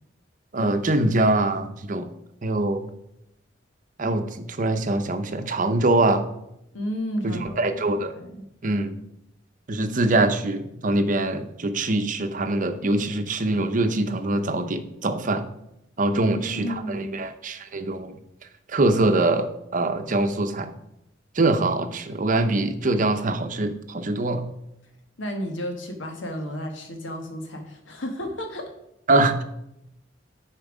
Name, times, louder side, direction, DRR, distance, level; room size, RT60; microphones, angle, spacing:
voice 1, 0.5-2.1 2.4-2.9 4.0-6.3 7.2-8.1 8.6-8.9 9.7-15.4 16.0-18.2 18.7-20.7 21.4-24.4 29.1-29.4, right 2 dB, 45° right, 8 dB, 0.7 m, -23 dB
voice 2, 6.7-7.7 8.1-8.4 16.1-17.2 25.2-28.7, equal, 85° left, 4 dB, 1.5 m, -32 dB
10.0 x 4.5 x 4.9 m, 0.82 s
head